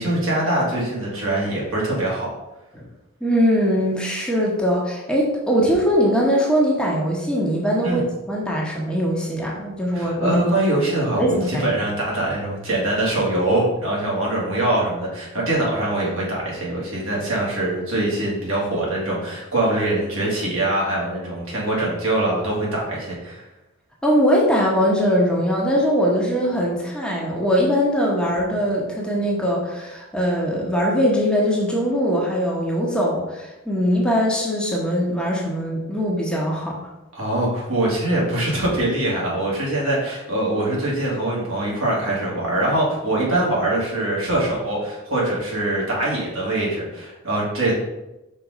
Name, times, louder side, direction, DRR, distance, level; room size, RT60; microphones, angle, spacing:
voice 1, 0.0-2.3 7.8-8.0 9.9-23.4 37.1-47.7, right 1 dB, 70° right, -5 dB, 2.4 m, -23 dB
voice 2, 3.2-10.4 11.2-11.7 24.0-36.7, equal, 5° left, -3 dB, 1.1 m, -21 dB
5.5 x 3.9 x 5.0 m, 0.98 s
head